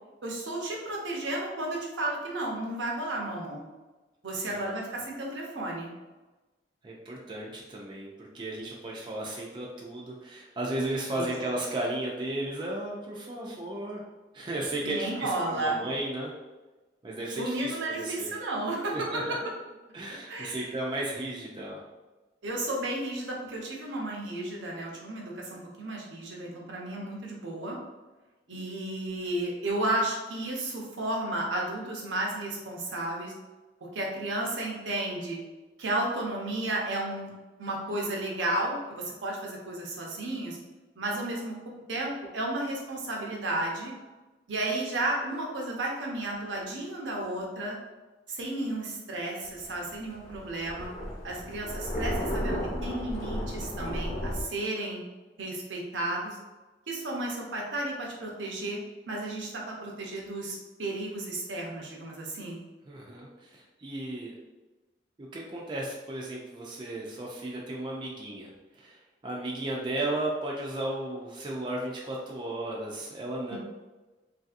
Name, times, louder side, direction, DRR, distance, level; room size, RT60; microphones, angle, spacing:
voice 1, 0.2-3.6 4.2-5.9 11.1-11.3 14.8-15.8 17.4-18.9 20.3-20.7 22.4-27.8 28.5-33.3 33.9-35.4 35.8-37.3 37.6-40.6 41.0-41.6 41.9-43.9 44.5-47.8 48.3-50.9 51.2-55.0 55.4-56.4 56.9-62.6 73.5-73.6, right 1 dB, 90° right, -1 dB, 0.7 m, -33 dB
voice 2, 6.8-14.0 14.3-16.3 17.0-18.3 18.9-19.4 19.9-21.8 62.9-64.3 65.3-73.6, right 1 dB, 25° right, -3 dB, 0.4 m, -34 dB
Thunder, 49.4-54.4, equal, 35° left, 0.9 m, -33 dB
3.2 x 2.6 x 2.4 m, 1.2 s
head